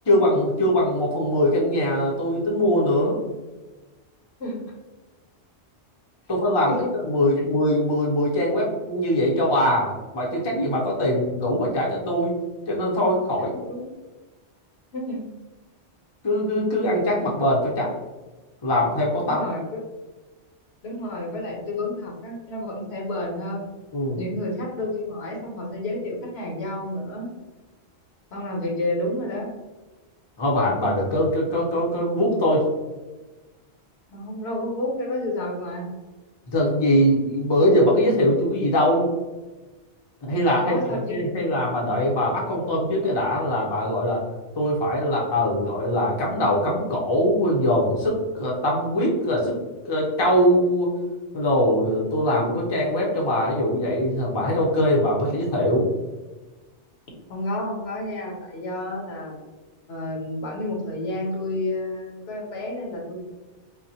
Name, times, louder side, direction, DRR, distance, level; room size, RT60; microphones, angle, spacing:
voice 1, 0.1-3.2 6.3-6.7 7.0-12.4 12.7-13.6 16.2-17.9 18.6-19.4 23.9-24.2 30.4-32.6 36.5-39.1 40.2-44.2 44.6-49.5 49.8-50.9 51.3-55.9, equal, 30° left, -3 dB, 0.6 m, -22 dB
voice 2, 14.9-15.3 19.2-19.6 20.8-23.7 24.2-27.3 28.3-29.5 34.1-35.9 40.4-41.5 57.3-59.4 59.9-63.2, left 1 dB, 65° left, -1 dB, 1.0 m, -30 dB
4.0 x 2.1 x 2.7 m, 1.2 s
omnidirectional pair, 1.2 m